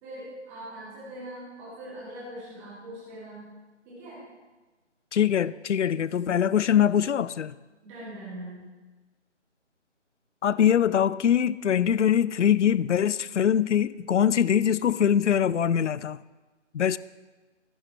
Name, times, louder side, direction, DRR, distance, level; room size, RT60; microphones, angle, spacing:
voice 1, 0.0-3.5 3.8-4.2 7.8-8.6, right 1 dB, 5° right, 2.3 m, -41 dB
voice 2, 5.1-7.6 10.4-16.2 16.7-17.0, left 9 dB, 70° left, 0.5 m, -23 dB
16.5 x 8.5 x 3.1 m
figure-of-eight pair, 170°, 37 cm